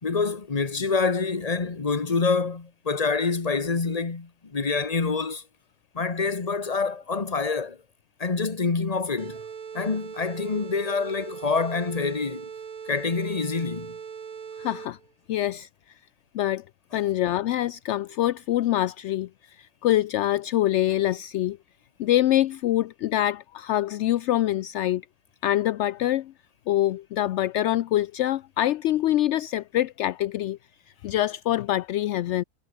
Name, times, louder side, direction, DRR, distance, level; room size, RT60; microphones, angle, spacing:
voice 1, 0.0-5.4 5.9-7.8 8.2-9.4 9.7-12.5 12.9-14.0, left 4 dB, 25° left, 1.4 m, -26 dB
sound 1, 9.2-15.1, right 7 dB, 65° right, 2.0 m, -40 dB
voice 2, 14.6-15.0 15.3-15.7 16.3-16.6 16.9-21.6 22.0-25.0 25.4-26.3 26.7-30.6 31.0-32.4, left 13 dB, 70° left, 0.7 m, -25 dB
omnidirectional pair, 1.6 m